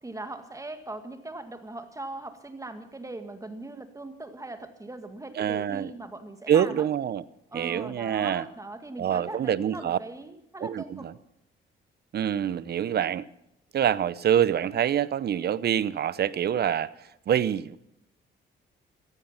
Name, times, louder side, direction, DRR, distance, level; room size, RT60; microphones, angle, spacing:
voice 1, 0.0-6.8 7.5-11.1, right 2 dB, 15° right, 1.9 m, -40 dB
voice 2, 5.4-5.9 6.5-7.2 7.5-8.5 9.0-10.0 10.6-11.1 12.1-13.3 13.7-16.9 17.3-17.8, right 9 dB, 55° right, 0.8 m, -25 dB
15.5 x 15.0 x 5.7 m
cardioid pair, 90°, 20 cm